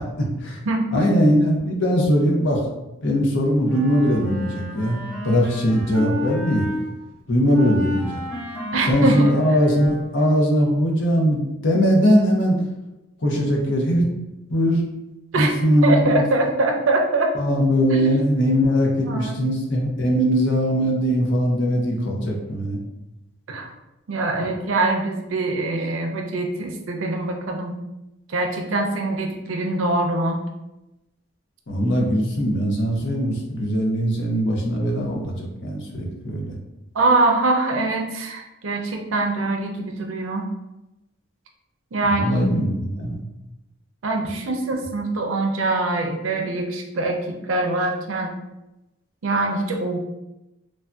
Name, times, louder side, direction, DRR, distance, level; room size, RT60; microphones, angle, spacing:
voice 1, 0.0-0.6 0.9-2.7 3.0-6.7 7.3-8.2 8.9-12.6 13.2-14.1 14.5-14.8 15.4-16.3 17.3-22.8 31.7-36.6 42.0-43.2, equal, 65° left, 0 dB, 0.6 m, -20 dB
voice 2, 0.7-1.1 8.7-9.3 13.3-13.4 15.3-15.5 15.8-17.4 17.9-18.1 19.0-19.4 23.5-23.7 24.1-27.8 28.3-30.4 36.9-40.5 41.9-42.5 44.0-48.3 49.2-50.0, right 2 dB, 85° right, 2 dB, 0.5 m, -23 dB
Wind instrument woodwind instrument, 3.6-6.9 7.5-10.3, left 2 dB, 15° left, 1.3 m, -30 dB
3.2 x 2.5 x 2.3 m, 0.95 s
head